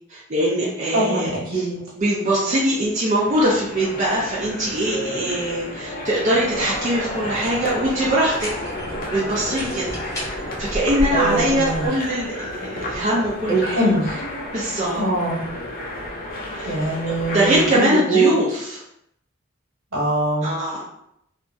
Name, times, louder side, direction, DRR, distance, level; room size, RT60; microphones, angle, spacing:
voice 1, 0.1-1.7 2.0-8.5 9.1-9.9 10.6-13.9 14.5-15.0 16.5-16.9 17.3-18.8 20.4-20.8, right 1 dB, 35° right, -6 dB, 0.5 m, -22 dB
voice 2, 0.9-1.7 11.1-11.8 13.5-14.1 14.9-15.4 16.7-18.3 19.9-20.5, right 2 dB, 70° right, -6 dB, 1.3 m, -22 dB
sound 1, 3.1-17.8, left 1 dB, 45° left, 0.5 m, -32 dB
sound 2, 6.5-11.9, equal, 15° left, 0.8 m, -31 dB
2.8 x 2.3 x 2.5 m, 0.77 s
head